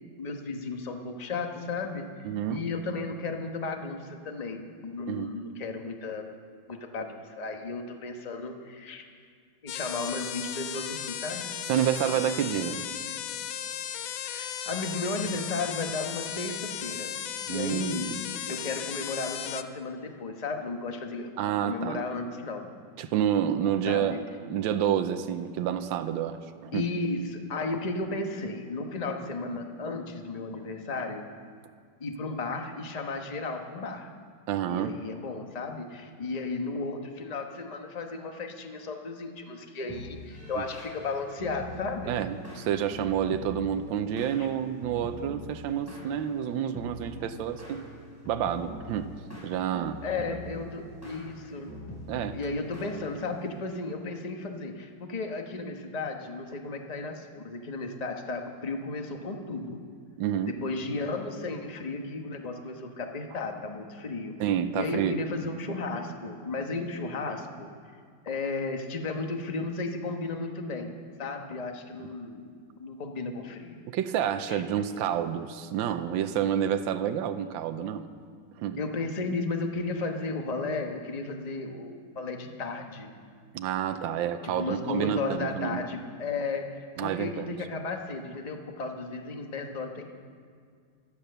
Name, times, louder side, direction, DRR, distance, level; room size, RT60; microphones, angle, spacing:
voice 1, 0.2-6.2 6.7-9.0 9.6-11.5 14.2-17.1 17.5-18.1 18.5-22.7 23.9-24.2 26.7-31.3 32.0-34.1 34.7-42.2 44.4-44.5 50.0-51.8 52.3-59.8 60.4-64.4 64.7-67.7 68.2-70.9 71.2-72.5 72.8-73.8 74.5-74.6 78.8-83.1 84.4-90.1, left 3 dB, 25° left, 4 dB, 1.0 m, -34 dB
voice 2, 2.2-2.6 5.1-5.3 11.7-12.9 17.5-18.2 21.4-22.1 23.0-24.2 24.5-26.9 34.5-35.0 40.6-40.7 42.1-47.8 48.3-49.1 49.4-50.0 52.1-52.4 60.2-60.5 64.4-65.2 73.9-78.1 78.6-78.8 83.5-85.8 87.0-87.5, right 9 dB, 80° right, 9 dB, 1.5 m, -29 dB
sound 1, 9.7-19.6, left 10 dB, 90° left, 1.5 m, -36 dB
sound 2, 39.9-53.6, left 1 dB, 5° left, 4.4 m, -44 dB
17.0 x 12.0 x 6.7 m, 2.1 s
omnidirectional pair, 2.2 m